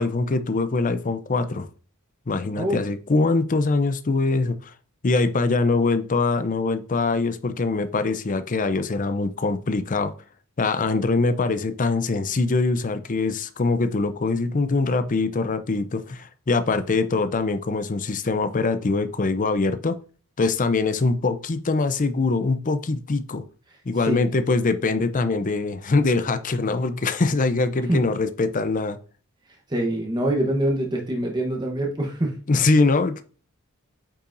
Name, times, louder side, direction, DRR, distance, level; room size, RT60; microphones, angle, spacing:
voice 1, 0.0-1.7 2.3-4.7 5.0-10.1 10.6-20.0 20.4-23.4 23.9-29.0 32.5-33.2, left 3 dB, 35° left, 0.5 m, -23 dB
voice 2, 29.7-32.4, right 1 dB, 20° right, 1.0 m, -24 dB
8.6 x 5.6 x 2.6 m
head